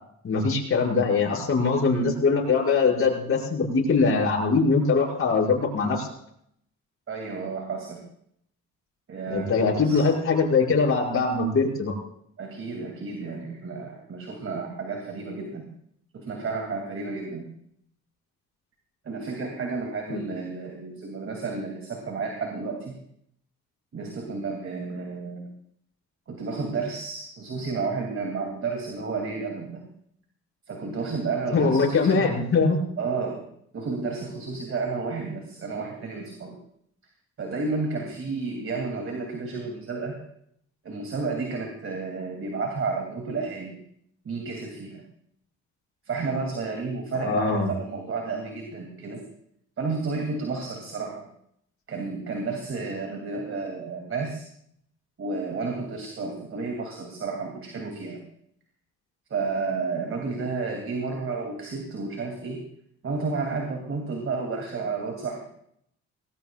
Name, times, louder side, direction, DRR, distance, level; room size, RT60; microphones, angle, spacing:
voice 1, 0.2-6.1 9.3-11.9 20.1-20.2 31.5-32.8 47.1-47.7, left 4 dB, 45° left, -2 dB, 6.2 m, -22 dB
voice 2, 7.1-8.1 9.1-10.1 12.4-15.7 16.1-17.5 19.0-23.0 23.9-25.5 26.3-29.9 30.7-32.3 33.0-36.5 37.4-40.2 40.8-43.8 44.2-45.1 46.1-49.3 49.8-51.3 51.9-54.4 55.2-58.3 59.3-62.6 63.0-65.5, right 4 dB, 45° right, 2 dB, 2.7 m, -31 dB
19.5 x 19.0 x 2.4 m, 0.70 s
cardioid pair, 90°, 30 cm